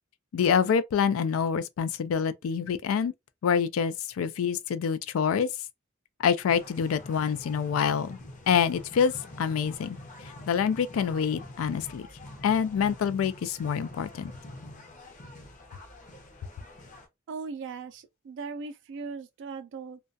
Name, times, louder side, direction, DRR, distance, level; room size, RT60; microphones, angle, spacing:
voice 1, 0.3-3.1 3.4-5.5 6.2-8.2 8.5-9.1 9.4-10.0 10.5-12.1 12.4-14.3, left 7 dB, 85° left, 0.3 m, -26 dB
sound 1, 6.5-17.1, left 1 dB, 40° left, 0.6 m, -45 dB
voice 2, 17.3-20.0, right 4 dB, 60° right, 0.3 m, -38 dB
2.3 x 2.2 x 2.5 m
head